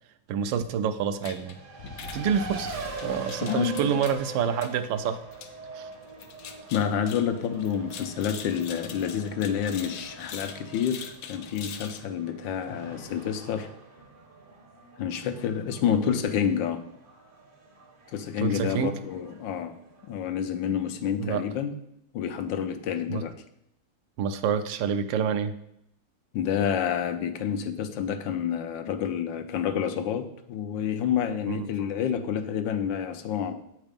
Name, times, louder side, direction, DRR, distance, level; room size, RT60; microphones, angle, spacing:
voice 1, 0.3-1.6 2.1-2.8 3.0-5.2 5.7-5.9 15.9-16.1 18.4-19.0 21.2-21.4 23.1-23.2 24.2-25.5 31.5-31.7, right 7 dB, 80° right, 10 dB, 1.3 m, -27 dB
sound 1, 1.2-12.0, left 6 dB, 65° left, 0.9 m, -44 dB
Race car auto racing, 1.2-20.4, right 2 dB, 40° right, 0.8 m, -43 dB
voice 2, 3.4-3.9 6.7-13.7 15.0-16.8 18.1-19.7 20.1-21.7 22.1-23.4 26.3-33.5, left 8 dB, 80° left, 8 dB, 1.4 m, -29 dB
8.2 x 4.1 x 5.1 m, 0.76 s
omnidirectional pair, 2.1 m